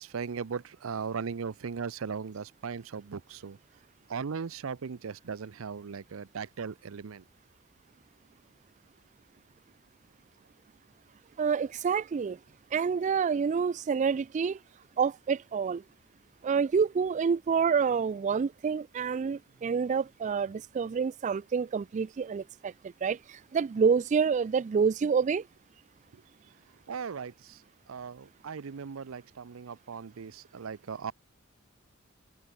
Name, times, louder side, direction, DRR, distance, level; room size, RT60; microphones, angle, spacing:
voice 1, 0.0-3.6 4.1-7.2 26.1-26.2 26.9-27.6 27.9-31.1, right 6 dB, 90° right, 0.6 m, -38 dB
voice 2, 11.4-12.4 12.7-14.6 15.0-15.8 16.4-22.7 23.0-25.4, right 6 dB, 35° right, 0.3 m, -28 dB
head